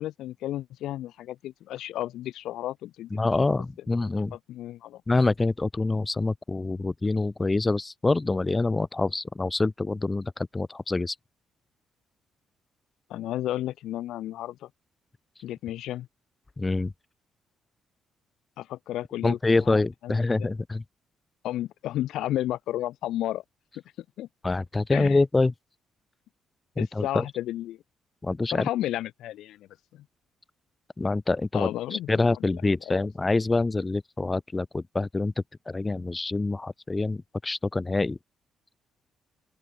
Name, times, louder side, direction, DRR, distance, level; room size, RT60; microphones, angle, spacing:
voice 1, 0.0-3.1 4.5-5.0 13.1-14.7 15.4-16.1 18.6-19.4 20.0-20.1 20.4-20.5 21.4-23.4 24.2-24.3 24.9-25.2 26.8-27.8 28.5-29.7 31.5-32.1 32.9-33.0, left 13 dB, 85° left, 0.4 m, -32 dB
voice 2, 3.1-4.4 5.1-11.1 16.6-16.9 19.2-20.8 24.4-25.5 26.8-27.3 28.2-28.7 31.0-35.3 35.7-38.2, left 3 dB, 20° left, 1.5 m, -26 dB
open air
cardioid pair, 90°, 0 cm